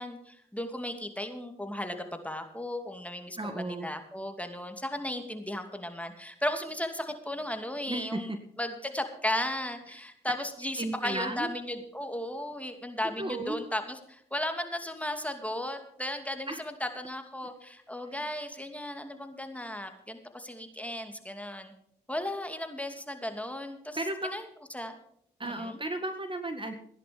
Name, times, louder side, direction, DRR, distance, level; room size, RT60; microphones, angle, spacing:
voice 1, 0.0-21.7 22.1-24.0 24.2-24.5 24.7-25.0 25.4-25.8, left 1 dB, 5° left, 6 dB, 2.6 m, -35 dB
voice 2, 3.4-3.9 7.9-8.2 10.8-11.5 13.2-13.6 16.5-16.6 18.1-18.3 24.0-24.3 25.4-26.7, right 2 dB, 25° right, 7 dB, 1.9 m, -34 dB
15.5 x 10.5 x 5.3 m, 0.67 s
supercardioid pair, 50°, 20 cm